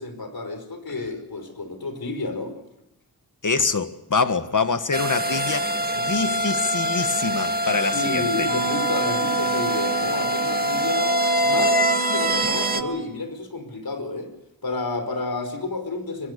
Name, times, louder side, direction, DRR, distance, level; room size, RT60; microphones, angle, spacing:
voice 1, 0.0-2.6 7.9-11.2 11.4-14.3 14.6-16.3, left 3 dB, 70° left, 5.2 m, -30 dB
voice 2, 3.4-8.5, left 4 dB, 55° left, 1.6 m, -25 dB
sound 1, 4.9-12.8, equal, 25° right, 1.7 m, -24 dB
Wind instrument woodwind instrument, 8.4-13.0, right 6 dB, 75° right, 5.8 m, -31 dB
23.5 x 21.5 x 6.8 m
wide cardioid pair, 80°, 37 cm